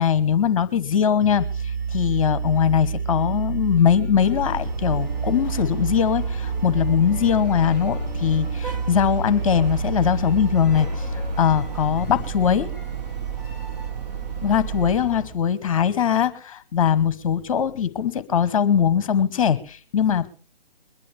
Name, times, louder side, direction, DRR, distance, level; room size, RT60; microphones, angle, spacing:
voice 1, 0.0-12.7 14.4-20.3, left 8 dB, 35° left, 14 dB, 1.2 m, -21 dB
sound 1, 1.2-14.9, right 5 dB, 85° right, 4.6 m, -29 dB
sound 2, 3.5-13.9, left 1 dB, ahead, 3.8 m, -46 dB
sound 3, 4.2-15.4, right 3 dB, 45° right, 1.3 m, -36 dB
22.5 x 11.5 x 3.3 m, 0.36 s
figure-of-eight pair, 145°, 29 cm